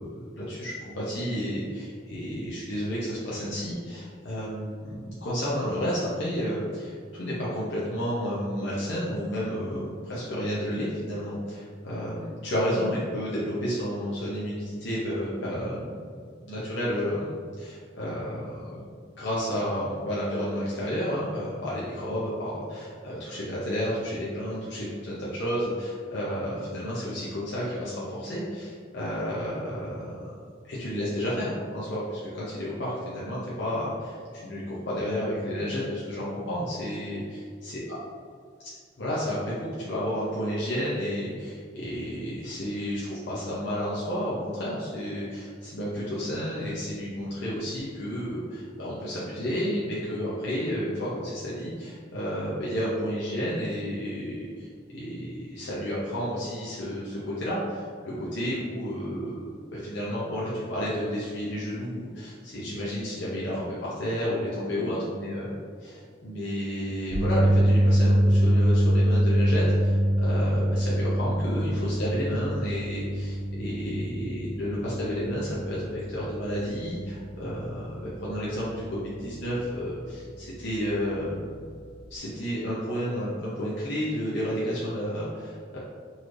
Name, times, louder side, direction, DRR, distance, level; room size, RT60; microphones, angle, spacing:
voice 1, 0.0-16.0 16.4-18.9 19.2-30.4 30.6-37.8 39.0-65.5 65.8-81.6 82.1-85.8, equal, 65° left, -8 dB, 0.7 m, -31 dB
sound 1, 67.1-79.4 79.7-80.0 82.1-82.2, equal, 75° right, 1.4 m, -25 dB
4.0 x 3.1 x 2.5 m, 2.1 s
head